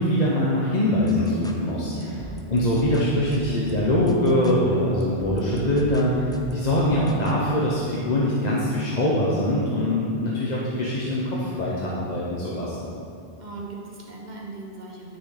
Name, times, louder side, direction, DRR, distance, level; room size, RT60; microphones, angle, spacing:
voice 1, 0.0-2.1 2.5-12.8, left 1 dB, 40° left, -6 dB, 1.1 m, -23 dB
sound 1, 1.0-7.3, equal, 5° left, 0.4 m, -40 dB
voice 2, 1.9-2.5 13.4-15.2, right 3 dB, 45° right, -3 dB, 1.3 m, -39 dB
11.5 x 6.6 x 4.0 m, 2.5 s
omnidirectional pair, 1.1 m